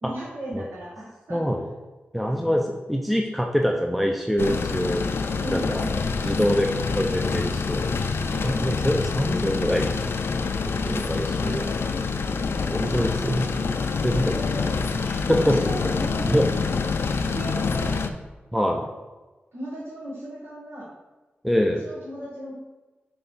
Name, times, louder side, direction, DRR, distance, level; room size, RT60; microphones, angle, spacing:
voice 1, 0.0-1.4 2.2-2.8 5.4-6.1 7.3-7.6 8.2-8.5 10.9-12.0 12.9-13.4 14.2-16.4 17.2-18.0 19.5-20.9 21.8-22.5, right 1 dB, 70° right, -8 dB, 1.7 m, -36 dB
voice 2, 1.3-1.6 2.1-5.1 5.5-5.9 6.2-7.8 8.4-9.9 10.9-12.0 12.7-13.7 14.0-14.4 15.3-15.6 16.3-16.4 18.5-18.9 21.4-21.8, equal, ahead, 2 dB, 0.6 m, -24 dB
sound 1, 4.4-18.1, left 4 dB, 70° left, 0.5 m, -26 dB
6.4 x 3.4 x 5.5 m, 1.2 s
cardioid pair, 65°, 4 cm